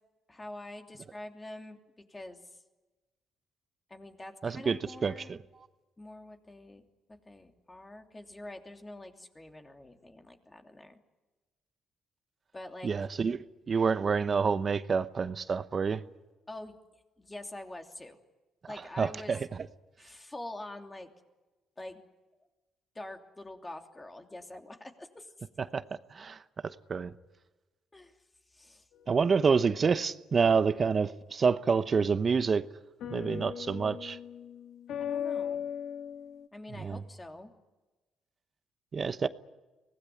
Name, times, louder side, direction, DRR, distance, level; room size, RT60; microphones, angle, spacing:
voice 1, 0.3-1.8 2.1-2.4 3.9-5.4 6.0-6.8 7.1-11.0 12.5-12.9 16.5-16.8 17.2-18.2 18.7-19.3 20.0-21.1 21.8-22.0 22.9-25.5 27.9-28.2 28.5-28.9 35.0-35.6 36.5-37.5, left 1 dB, 20° left, 3.0 m, -45 dB
voice 2, 4.4-5.4 12.8-16.0 19.0-19.4 25.7-25.8 26.1-27.1 29.1-32.6 33.1-34.2 36.8-37.0 38.9-39.3, right 5 dB, 40° right, 0.9 m, -28 dB
sound 1, 28.9-29.3 33.0-36.5, left 9 dB, 80° left, 2.1 m, -38 dB
24.5 x 19.0 x 9.5 m
cardioid pair, 90°, 0 cm